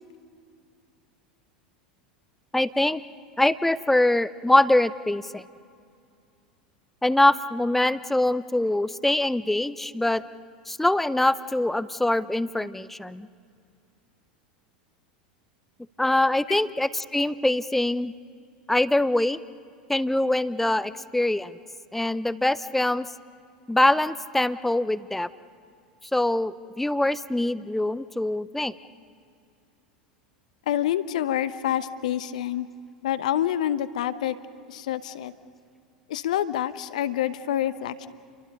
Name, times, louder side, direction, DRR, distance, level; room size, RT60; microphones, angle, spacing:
voice 1, 2.5-3.0 3.4-5.4 7.0-10.2 10.7-13.3 16.0-18.1 18.7-19.4 19.9-21.6 21.9-23.1 23.7-25.3 26.1-28.7, left 1 dB, 5° left, 16 dB, 0.7 m, -23 dB
voice 2, 30.7-32.7 33.0-34.4 34.7-35.3 36.1-38.1, left 11 dB, 65° left, 13 dB, 0.9 m, -27 dB
29.5 x 24.0 x 5.4 m, 2.4 s
figure-of-eight pair, 80°, 4 cm